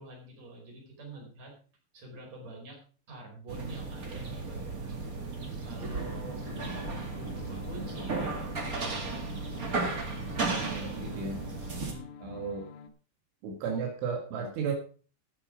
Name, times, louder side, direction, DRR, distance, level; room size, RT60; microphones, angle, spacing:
voice 1, 0.0-1.5 1.9-2.8 3.1-5.3 5.6-6.9 7.2-9.0 11.7-12.2, right 2 dB, 35° right, -1 dB, 5.9 m, -46 dB
sound 1, 3.5-11.9, right 3 dB, 60° right, 0.9 m, -35 dB
sound 2, 5.8-12.9, left 7 dB, 75° left, 3.1 m, -47 dB
voice 2, 10.4-11.4 12.2-12.7 13.4-14.7, right 5 dB, 80° right, 2 dB, 4.3 m, -34 dB
13.0 x 8.8 x 5.0 m, 0.39 s
omnidirectional pair, 5.4 m